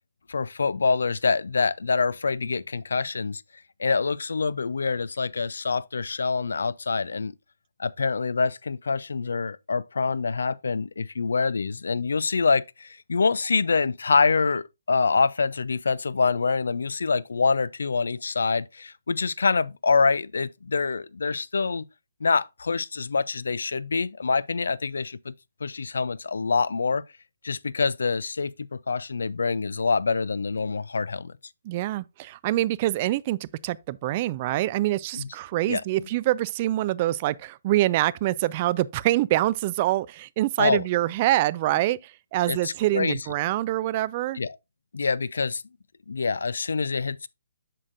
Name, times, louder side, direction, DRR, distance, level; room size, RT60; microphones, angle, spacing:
voice 1, 0.3-3.4 3.8-7.3 7.8-21.8 22.2-25.3 25.6-27.0 27.4-31.3 35.2-35.3 35.7-36.1 40.6-40.8 42.5-43.2 44.3-44.6 44.9-45.6 46.1-47.3, left 4 dB, 75° left, 0.4 m, -25 dB
voice 2, 31.7-44.4, right 15 dB, 35° right, 0.3 m, -25 dB
7.5 x 6.4 x 2.5 m
hypercardioid pair, 145°, 0 cm